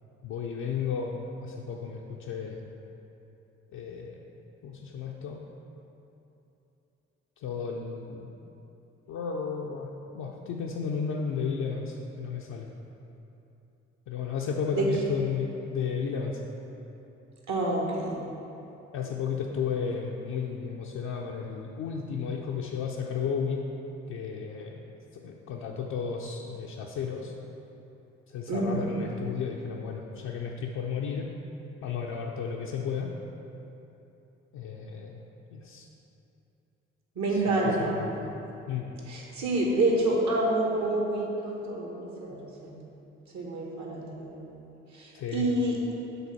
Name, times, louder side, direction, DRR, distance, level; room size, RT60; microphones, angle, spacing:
voice 1, 0.2-2.6 3.7-4.2 4.6-5.4 7.4-8.3 9.1-12.7 14.1-16.4 18.9-23.6 24.1-24.8 25.1-27.3 28.3-31.3 31.8-33.1 34.5-35.2 35.5-35.9 37.3-37.4 37.8-38.3 38.7-38.9 45.1-45.5, left 6 dB, 55° left, -2 dB, 0.6 m, -33 dB
voice 2, 17.5-18.2 28.5-28.9 37.1-38.0 39.1-42.8 43.3-44.6 44.9-45.8, right 2 dB, 55° right, -2 dB, 1.4 m, -28 dB
7.0 x 3.8 x 5.7 m, 2.9 s
figure-of-eight pair, 40°, 34 cm